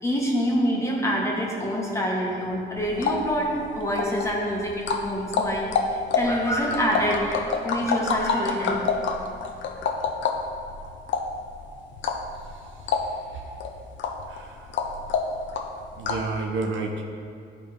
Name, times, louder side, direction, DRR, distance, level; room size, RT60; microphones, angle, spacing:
voice 1, 0.0-8.9, equal, 15° left, -3 dB, 1.5 m, -26 dB
sound 1, 2.8-16.4, left 5 dB, 70° left, 0.7 m, -29 dB
voice 2, 16.0-17.0, right 3 dB, 70° right, 2 dB, 0.8 m, -29 dB
11.0 x 4.3 x 3.4 m, 2.3 s
cardioid pair, 90°, 20 cm